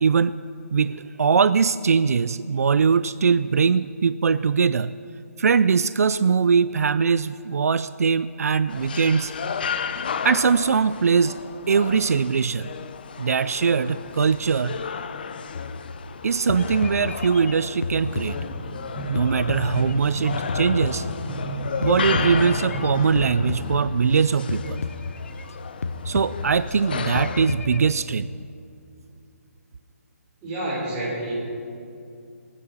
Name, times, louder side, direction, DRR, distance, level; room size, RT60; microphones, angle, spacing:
voice 1, 0.0-0.4 0.7-4.9 5.4-9.3 10.2-11.4 11.7-12.7 13.2-14.8 16.2-18.4 19.1-21.1 21.8-24.8 26.0-28.3, right 5 dB, 75° right, 15 dB, 0.4 m, -21 dB
sound 1, 8.7-27.5, left 6 dB, 35° left, 0.5 m, -33 dB
sound 2, 15.5-16.2 16.5-18.8 19.2-21.5 21.8-24.2 24.5-25.6 25.8-26.8 27.2-27.9, left 4 dB, 70° left, 1.0 m, -32 dB
sound 3, 18.2-23.8, right 1 dB, ahead, 2.1 m, -33 dB
voice 2, 30.4-31.3, right 1 dB, 15° right, -6 dB, 3.3 m, -28 dB
19.0 x 9.7 x 5.7 m, 2.6 s
hypercardioid pair, 175°, 8 cm